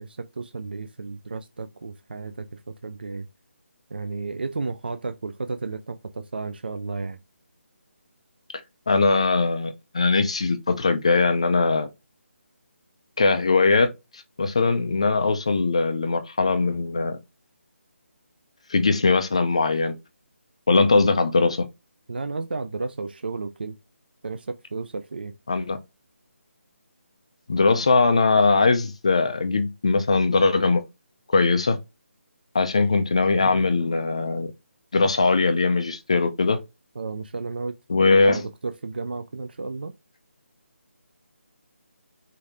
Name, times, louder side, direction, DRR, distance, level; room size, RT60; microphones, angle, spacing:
voice 1, 0.0-3.3 3.9-7.2 22.1-23.8 24.2-25.3 37.0-37.7 38.1-39.9, right 3 dB, 45° right, 0.4 m, -33 dB
voice 2, 8.9-11.9 13.2-17.2 18.7-19.9 20.7-21.7 25.5-25.8 27.5-30.8 31.3-31.8 32.5-34.5 34.9-36.6 37.9-38.4, left 3 dB, 25° left, 0.4 m, -21 dB
5.1 x 2.7 x 3.4 m
hypercardioid pair, 175°, 7 cm